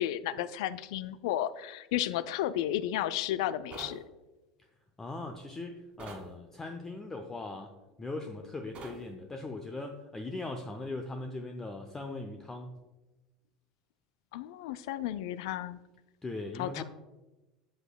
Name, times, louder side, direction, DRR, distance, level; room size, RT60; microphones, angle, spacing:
voice 1, 0.0-4.0 14.3-15.8 16.6-16.8, left 12 dB, 65° left, 14 dB, 0.3 m, -33 dB
sound 1, 3.7-4.0 6.0-6.3 8.7-9.0, right 3 dB, 40° right, 1.7 m, -44 dB
voice 2, 5.0-7.7 8.0-12.8 16.2-16.8, left 2 dB, 15° left, 4 dB, 0.6 m, -39 dB
7.9 x 7.7 x 2.2 m, 1.1 s
hypercardioid pair, 80°, 3 cm